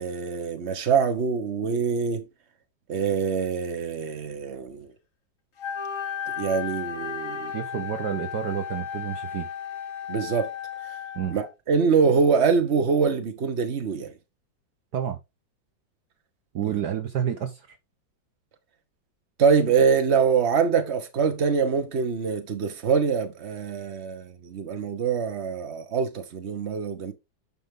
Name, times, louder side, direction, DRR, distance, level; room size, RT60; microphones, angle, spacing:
voice 1, 0.0-2.3 2.9-4.9 6.4-7.5 10.1-10.5 10.9-11.0 11.3-14.1 19.4-27.1, right 5 dB, 40° right, 1.5 m, -24 dB
Wind instrument woodwind instrument, 5.6-11.5, left 7 dB, 45° left, 1.8 m, -34 dB
voice 2, 7.5-9.5 11.1-11.4 14.9-15.2 16.5-17.8, right 9 dB, 65° right, 1.4 m, -29 dB
9.1 x 5.5 x 3.7 m
omnidirectional pair, 2.0 m